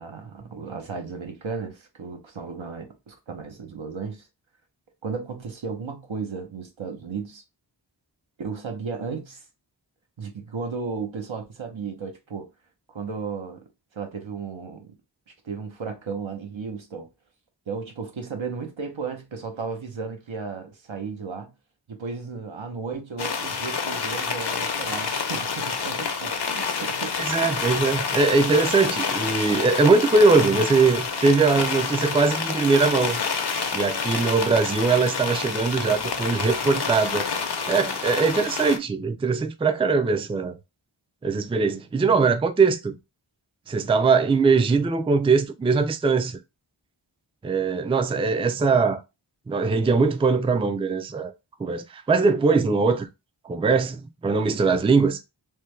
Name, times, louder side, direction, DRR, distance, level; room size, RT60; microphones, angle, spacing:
voice 1, 0.0-4.3 5.0-7.4 8.4-9.4 10.2-12.5 12.9-13.6 13.9-14.9 15.3-17.1 17.7-21.5 21.9-27.3 41.7-41.8, right 5 dB, 90° right, 0.9 m, -34 dB
sound 1, 23.2-38.8, left 5 dB, 60° left, 0.7 m, -28 dB
voice 2, 27.2-33.2 33.7-37.3 37.7-40.6 41.2-43.0 43.7-46.4 47.4-49.0 49.5-51.3 51.6-53.1 53.4-55.2, right 4 dB, 15° right, 0.3 m, -21 dB
3.3 x 2.2 x 3.2 m
wide cardioid pair, 40°, 45 cm